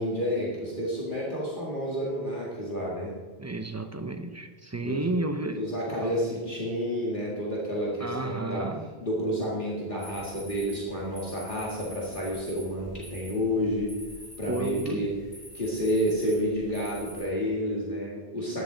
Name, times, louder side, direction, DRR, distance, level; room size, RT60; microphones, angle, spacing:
voice 1, 0.0-3.1 4.8-5.1 5.6-8.7 9.0-13.9 14.4-15.1 15.5-18.6, equal, 50° left, -5 dB, 2.1 m, -30 dB
voice 2, 3.4-5.6 6.0-6.2 8.0-8.9 14.5-15.0, right 2 dB, 20° right, 7 dB, 0.5 m, -32 dB
sound 1, 10.0-17.2, equal, 35° left, 3.3 m, -47 dB
13.5 x 10.0 x 3.9 m, 1.4 s
omnidirectional pair, 1.1 m